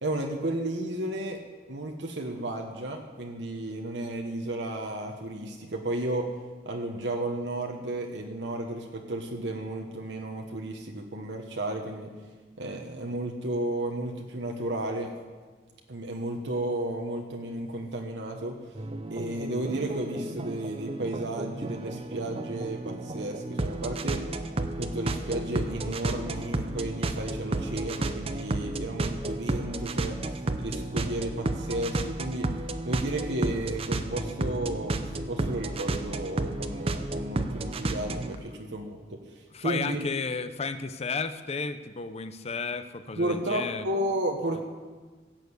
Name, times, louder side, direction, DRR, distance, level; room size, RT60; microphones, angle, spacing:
voice 1, 0.0-1.4 1.7-6.3 6.6-12.1 12.6-15.1 15.9-18.6 19.1-24.2 24.8-32.5 32.8-40.0 43.2-44.6, right 1 dB, 75° right, 2 dB, 1.2 m, -33 dB
sound 1, 18.7-38.4, right 2 dB, 35° right, 0.7 m, -32 dB
voice 2, 39.5-43.9, left 4 dB, 35° left, 10 dB, 0.6 m, -33 dB
16.5 x 6.7 x 8.2 m, 1.4 s
head